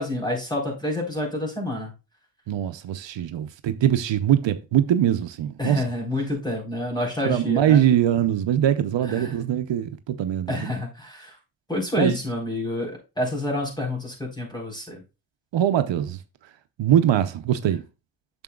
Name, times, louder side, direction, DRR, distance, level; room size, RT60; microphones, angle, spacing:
voice 1, 0.0-1.9 5.6-7.8 9.1-9.4 10.5-11.4 11.7-15.0, left 1 dB, 10° left, 4.1 m, -28 dB
voice 2, 2.5-5.8 7.3-10.7 12.0-12.2 15.5-16.2 16.8-17.8, right 10 dB, 80° right, 0.7 m, -22 dB
8.9 x 6.8 x 2.3 m
cardioid pair, 85°, 44 cm